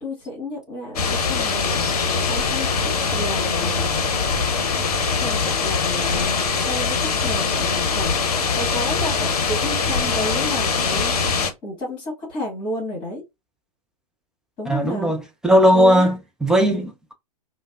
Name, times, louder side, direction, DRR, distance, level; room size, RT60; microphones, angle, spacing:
voice 1, 0.0-4.0 5.2-8.2 8.5-11.3 11.6-13.2 14.6-15.1 15.7-16.1, left 1 dB, 25° left, 1.6 m, -31 dB
sound 1, 1.0-11.5, left 5 dB, 65° left, 0.7 m, -22 dB
voice 2, 14.7-17.1, equal, 5° right, 0.3 m, -18 dB
3.2 x 2.1 x 2.3 m
figure-of-eight pair, 110°, 21 cm